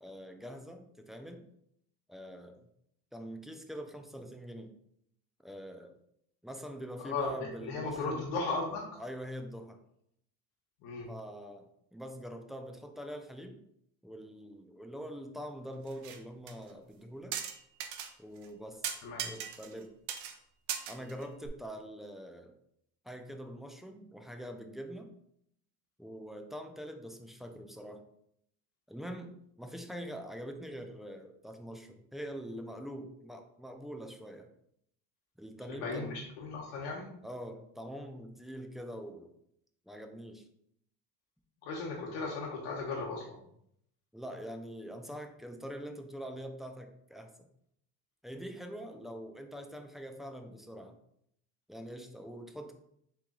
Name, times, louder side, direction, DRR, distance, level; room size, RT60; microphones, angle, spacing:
voice 1, 0.0-1.5 2.1-2.7 3.1-4.7 5.4-6.0 6.4-8.3 9.0-9.8 11.1-13.6 14.0-17.4 18.2-18.9 19.2-19.9 20.9-22.5 23.0-25.1 26.0-28.0 28.9-34.5 35.4-36.2 37.2-39.3 39.9-40.4 44.1-47.5 48.2-51.0 51.7-52.7, equal, ahead, 4 dB, 0.3 m, -44 dB
voice 2, 7.6-8.9 10.8-11.1 19.0-19.3 35.8-37.1 41.6-43.4, left 3 dB, 90° left, -1 dB, 0.9 m, -36 dB
sound 1, 15.9-16.2 16.5-16.6 17.3-18.1 18.4-18.5 18.8-19.8 20.1-20.4 20.7-21.5, right 9 dB, 75° right, 0.7 m, -38 dB
3.8 x 3.1 x 3.6 m, 0.71 s
cardioid pair, 115°, 40 cm